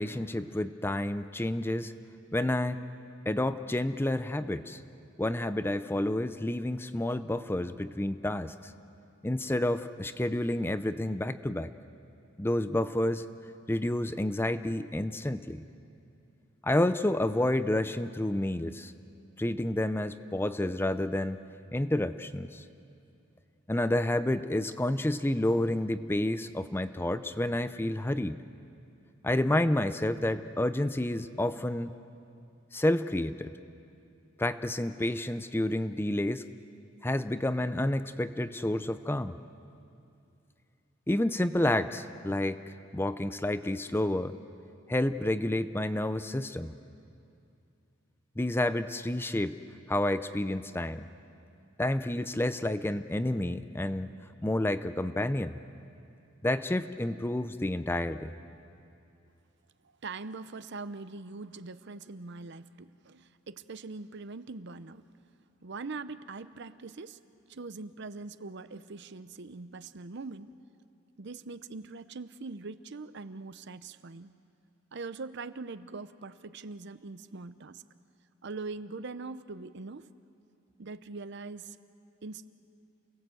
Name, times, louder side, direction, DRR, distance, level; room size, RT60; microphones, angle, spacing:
voice 1, 0.0-1.9 2.3-2.8 3.3-4.8 5.2-8.7 9.2-11.7 12.4-13.2 13.7-15.6 16.6-18.9 19.4-21.4 21.7-22.6 23.7-28.4 29.2-31.9 32.7-33.5 34.4-36.4 37.0-39.4 41.1-44.3 44.9-46.7 48.4-49.6 49.9-51.1 51.8-54.1 54.4-55.6 56.4-58.3, left 1 dB, 10° left, 12 dB, 0.5 m, -29 dB
voice 2, 59.8-65.0 65.6-67.2 67.5-70.5 71.2-74.3 74.9-77.8 78.4-80.1 80.8-81.8 82.2-82.5, right 3 dB, 60° right, 13 dB, 0.7 m, -42 dB
28.5 x 19.0 x 7.8 m, 2.6 s
head